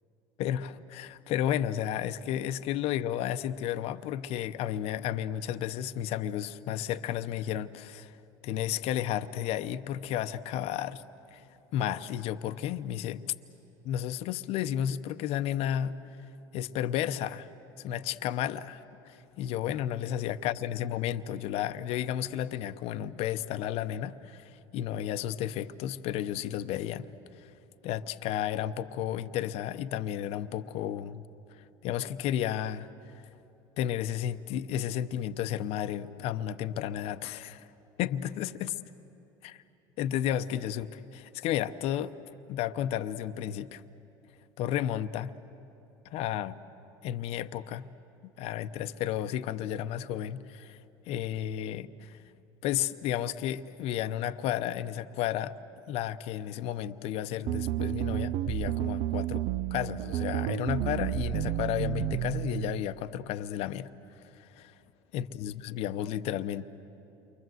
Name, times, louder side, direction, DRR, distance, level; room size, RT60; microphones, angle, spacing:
voice 1, 0.4-8.2 8.4-11.0 11.3-11.4 11.7-13.2 13.8-16.0 16.5-17.5 17.8-27.1 27.4-27.5 27.8-31.2 31.8-32.9 33.8-37.7 38.0-38.7 39.4-39.5 40.0-42.2 42.5-43.8 44.6-45.3 46.0-46.6 47.0-47.9 48.4-50.8 51.1-52.2 52.6-55.5 55.9-59.4 59.7-63.9 64.3-64.7 65.1-66.7, left 11 dB, 60° left, 11 dB, 0.7 m, -32 dB
sound 1, 57.5-62.8, right 14 dB, 65° right, 0.5 m, -31 dB
29.0 x 23.5 x 7.8 m, 3.0 s
supercardioid pair, 90°, 12 cm